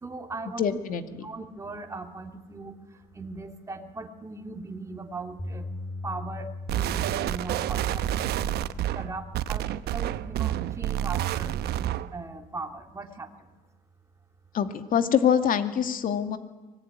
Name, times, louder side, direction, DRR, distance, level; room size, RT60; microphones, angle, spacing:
voice 1, 0.0-0.6 1.2-5.7 6.0-8.6 8.9-13.3, right 3 dB, 15° right, 4 dB, 2.6 m, -39 dB
voice 2, 0.6-1.0 14.5-16.4, left 8 dB, 55° left, 8 dB, 2.4 m, -24 dB
Bass guitar, 5.4-11.6, left 2 dB, 20° left, 5.3 m, -41 dB
sound 1, 6.7-12.2, right 12 dB, 75° right, 1.0 m, -29 dB
24.5 x 20.0 x 9.8 m, 1.2 s
cardioid pair, 110°, 17 cm